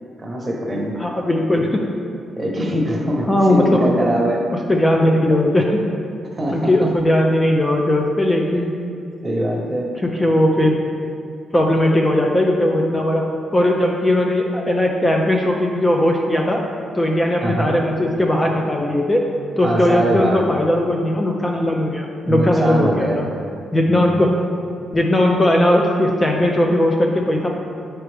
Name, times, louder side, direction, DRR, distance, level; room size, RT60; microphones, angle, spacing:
voice 1, 0.2-1.0 2.4-4.5 6.3-6.9 9.2-9.9 17.4-17.8 19.6-20.4 22.2-23.2 23.8-24.2, right 1 dB, 25° right, -1 dB, 1.1 m, -22 dB
voice 2, 1.0-1.8 3.3-4.1 4.7-5.8 6.5-8.7 10.0-10.8 11.5-13.2 13.5-16.6 16.9-19.2 19.6-23.3 23.7-24.3 24.9-27.5, left 1 dB, 20° left, 0 dB, 0.5 m, -18 dB
7.2 x 4.4 x 3.4 m, 2.5 s
cardioid pair, 95°, 0 cm